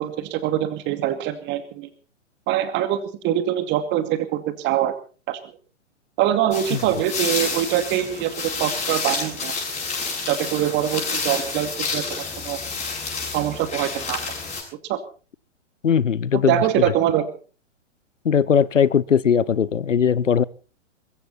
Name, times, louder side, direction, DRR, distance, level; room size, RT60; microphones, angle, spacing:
voice 1, 0.0-1.9 2.5-4.9 5.3-5.4 6.2-9.5 10.3-12.0 12.4-12.6 13.3-14.2 14.9-15.0 16.3-17.3, right 11 dB, 30° right, 2.4 m, -23 dB
sound 1, 6.5-14.6, left 4 dB, 20° left, 7.6 m, -29 dB
voice 2, 15.8-16.8 18.2-20.4, left 7 dB, 85° left, 0.8 m, -19 dB
21.5 x 15.5 x 4.2 m
figure-of-eight pair, 115°, 36 cm